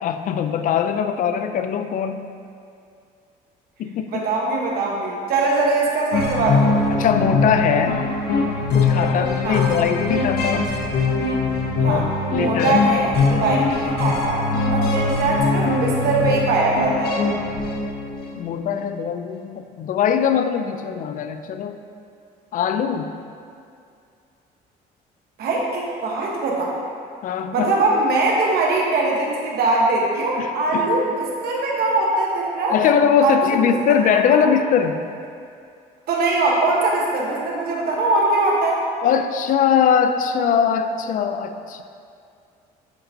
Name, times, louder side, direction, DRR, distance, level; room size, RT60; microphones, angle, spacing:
voice 1, 0.0-2.3 3.8-4.2 6.9-8.0 8.7-10.7 11.8-12.8 18.4-21.8 22.5-23.1 27.2-27.7 30.4-30.9 32.7-35.0 39.0-41.8, left 7 dB, 55° left, 8 dB, 0.4 m, -21 dB
voice 2, 4.1-6.8 9.4-9.7 11.8-12.0 12.3-17.1 25.4-26.7 27.5-32.7 33.2-33.7 34.3-34.5 36.1-38.8, right 2 dB, 65° right, -3 dB, 1.2 m, -21 dB
sound 1, 6.1-18.4, left 3 dB, 70° left, 0.8 m, -22 dB
9.7 x 3.9 x 2.8 m, 2.4 s
cardioid pair, 110°, 17 cm